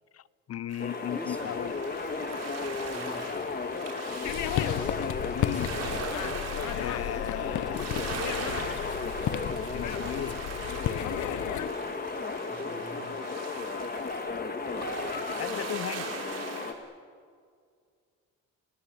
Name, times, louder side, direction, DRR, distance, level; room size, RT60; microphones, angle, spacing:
voice 1, 0.1-1.8 4.6-5.8 6.7-7.9 9.7-10.8 11.2-11.5 15.4-16.2, left 11 dB, 55° left, 0.8 m, -37 dB
sound 1, 0.7-16.7, right 5 dB, 55° right, 5.0 m, -41 dB
sound 2, 0.8-16.7, left 4 dB, 30° left, 2.1 m, -35 dB
voice 2, 1.1-1.6 2.9-3.3 12.5-13.1, equal, 5° left, 3.4 m, -43 dB
sound 3, 4.2-11.7, left 12 dB, 80° left, 1.0 m, -33 dB
29.5 x 19.0 x 8.6 m
cardioid pair, 90°, 30 cm